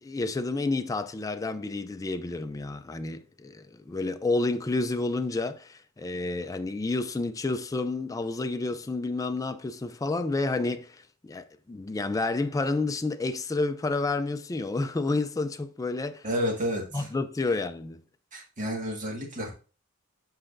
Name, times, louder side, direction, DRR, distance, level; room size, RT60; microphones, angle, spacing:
voice 1, 0.0-16.2 16.9-18.0, left 3 dB, 15° left, 0.3 m, -30 dB
voice 2, 16.2-17.1 18.3-19.5, equal, 35° right, 1.7 m, -30 dB
8.0 x 4.9 x 2.6 m
head